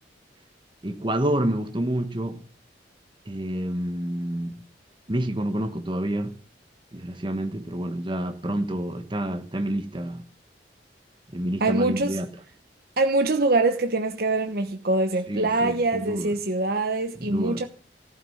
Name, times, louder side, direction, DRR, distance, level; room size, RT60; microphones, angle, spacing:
voice 1, 0.8-2.4 3.3-4.6 5.1-6.3 6.9-10.2 11.3-12.3 15.3-16.3 17.2-17.6, right 1 dB, 30° right, 1.2 m, -28 dB
voice 2, 11.6-12.2 13.0-17.7, right 2 dB, 60° right, 1.1 m, -24 dB
15.0 x 9.6 x 6.5 m
head